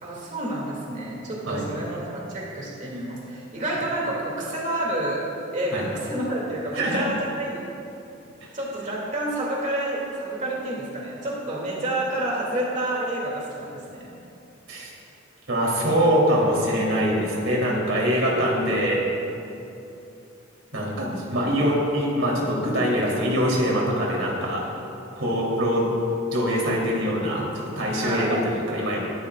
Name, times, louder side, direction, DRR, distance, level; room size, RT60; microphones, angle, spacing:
voice 1, 0.0-5.2 5.5-7.6 8.5-14.1 27.9-28.3, right 1 dB, 40° right, -4 dB, 2.5 m, -29 dB
voice 2, 6.7-7.1 14.7-14.9 15.5-19.0 20.7-24.6 25.1-25.9 26.3-29.0, equal, 85° right, -3 dB, 3.3 m, -23 dB
24.0 x 12.0 x 2.5 m, 2.8 s
head